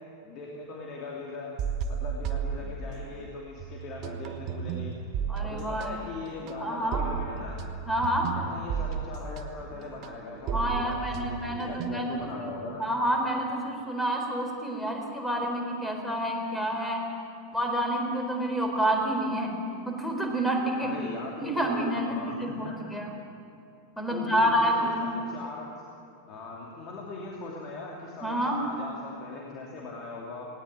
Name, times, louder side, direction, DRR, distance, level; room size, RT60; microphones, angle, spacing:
voice 1, 0.2-1.5 1.9-4.9 5.4-7.6 8.3-12.8 20.8-22.7 24.1-25.7 26.3-30.5, left 3 dB, 35° left, -2 dB, 2.9 m, -40 dB
sound 1, 1.6-3.3 3.6-12.3, right 7 dB, 40° right, 1.4 m, -34 dB
voice 2, 5.3-6.0 6.6-7.0 7.9-8.3 10.5-12.5 12.8-17.0 17.5-19.5 19.9-21.0 21.4-23.1 24.0-25.0 28.2-28.6, right 1 dB, 5° left, 2 dB, 4.3 m, -28 dB
19.5 x 18.0 x 8.8 m, 2.6 s
figure-of-eight pair, 90°, 0 cm